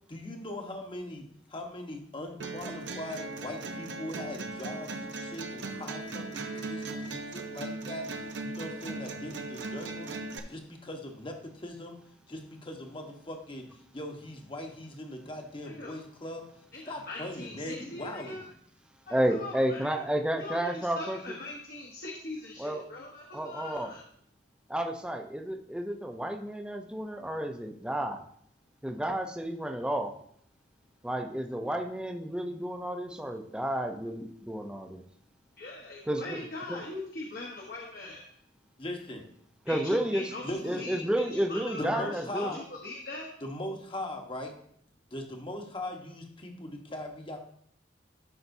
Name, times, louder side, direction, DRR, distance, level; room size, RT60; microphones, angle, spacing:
voice 1, 0.1-10.1 10.5-12.0 12.3-16.5 16.9-18.4 38.8-39.2 40.4-40.9 41.8-42.6 43.4-44.5 45.1-47.4, left 1 dB, 30° left, 3 dB, 1.1 m, -40 dB
sound 1, 2.4-10.4, right 3 dB, 70° right, 0.8 m, -38 dB
voice 2, 16.7-18.4 19.0-20.0 20.4-24.0 35.6-38.2 39.7-43.3, left 2 dB, 55° left, -2 dB, 1.1 m, -41 dB
voice 3, 19.1-21.2 22.6-22.8 23.3-23.9 24.7-28.2 28.8-30.1 31.0-35.0 36.1-36.4 36.7-36.8 39.7-40.2 40.6-42.6, right 1 dB, 5° right, 4 dB, 0.6 m, -31 dB
12.0 x 5.8 x 2.7 m, 0.65 s
head